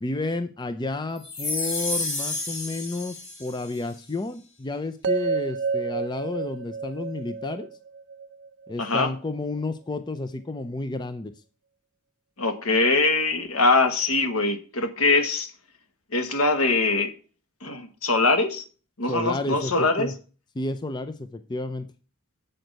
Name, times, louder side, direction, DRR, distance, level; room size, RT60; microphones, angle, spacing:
voice 1, 0.0-7.7 8.7-11.3 19.1-20.1 20.5-21.9, left 2 dB, 20° left, 10 dB, 0.4 m, -31 dB
sound 1, 1.2-3.8, left 2 dB, 50° left, 2.2 m, -30 dB
sound 2, 5.0-9.2, right 5 dB, 50° right, 0.6 m, -30 dB
voice 2, 8.8-9.1 12.4-15.5 16.1-17.1 17.6-18.6 19.0-20.1, left 3 dB, 75° left, 7 dB, 1.4 m, -22 dB
7.8 x 6.2 x 5.2 m, 0.36 s
head